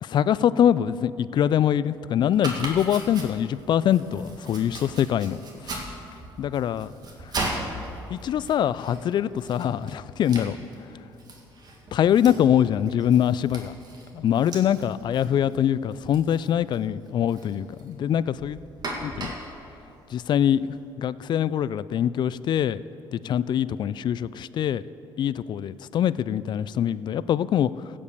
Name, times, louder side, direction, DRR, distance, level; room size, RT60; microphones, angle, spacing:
voice 1, 0.0-5.9 6.4-6.9 8.1-10.6 11.9-13.7 14.1-18.6 19.0-19.3 20.1-22.8 23.1-24.8 25.2-27.7, left 10 dB, 55° left, 17 dB, 0.3 m, -24 dB
Domestic sounds home sounds, 2.3-20.8, right 2 dB, 45° right, 2.1 m, -39 dB
15.5 x 5.3 x 6.6 m, 2.8 s
supercardioid pair, 75°, 9 cm